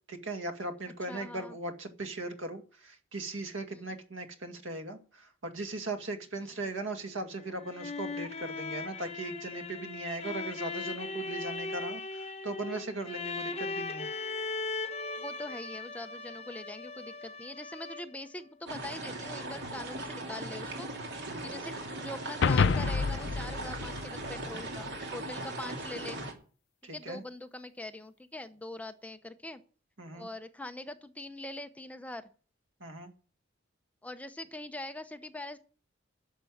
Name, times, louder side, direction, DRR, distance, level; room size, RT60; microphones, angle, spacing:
voice 1, 0.1-14.1 21.3-21.6 26.8-27.2 30.0-30.3 32.8-33.1, right 2 dB, 75° right, 6 dB, 2.1 m, -38 dB
voice 2, 1.1-1.6 3.7-3.8 6.4-6.6 15.2-20.9 21.1-26.2 26.9-29.6 30.1-32.3 34.0-35.6, left 1 dB, 5° left, 8 dB, 0.7 m, -43 dB
sound 1, 7.4-18.3, left 3 dB, 30° left, 1.0 m, -38 dB
sound 2, 18.7-26.3, right 2 dB, 60° right, 2.9 m, -39 dB
sound 3, 22.4-24.9, left 5 dB, 65° left, 0.5 m, -28 dB
11.5 x 6.9 x 9.2 m, 0.40 s
head